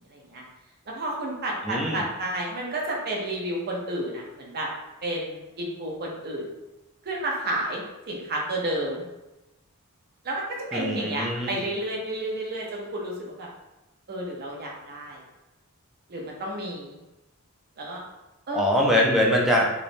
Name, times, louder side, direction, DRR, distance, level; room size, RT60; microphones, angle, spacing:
voice 1, 0.1-0.4 0.9-4.7 5.0-6.4 7.0-9.0 10.2-13.5 14.1-15.2 16.1-17.0 17.8-18.0 18.5-18.7, right 1 dB, 45° right, -2 dB, 0.6 m, -31 dB
voice 2, 1.6-2.0 10.7-11.5 18.5-19.7, equal, ahead, -2 dB, 0.3 m, -22 dB
3.1 x 2.0 x 2.5 m, 1.0 s
head